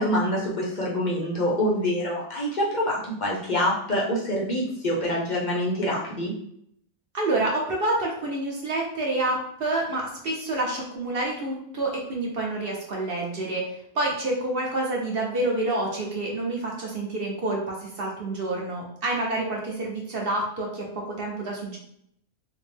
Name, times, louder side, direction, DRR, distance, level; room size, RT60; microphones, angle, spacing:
voice 1, 0.0-6.3, equal, 45° left, -4 dB, 0.6 m, -26 dB
voice 2, 7.1-21.8, right 2 dB, 50° right, -2 dB, 0.8 m, -28 dB
3.4 x 2.0 x 3.3 m, 0.70 s
omnidirectional pair, 1.5 m